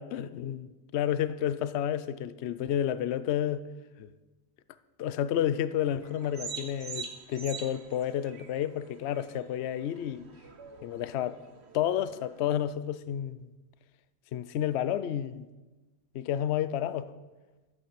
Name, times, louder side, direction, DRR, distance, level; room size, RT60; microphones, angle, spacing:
voice 1, 0.0-3.7 4.0-4.1 5.0-10.3 10.8-11.4 11.7-13.5 14.3-15.5 16.1-17.1, left 10 dB, 60° left, 0.7 m, -31 dB
sound 1, 6.0-12.7, right 5 dB, 50° right, 1.2 m, -45 dB
12.5 x 8.5 x 7.5 m
omnidirectional pair, 1.5 m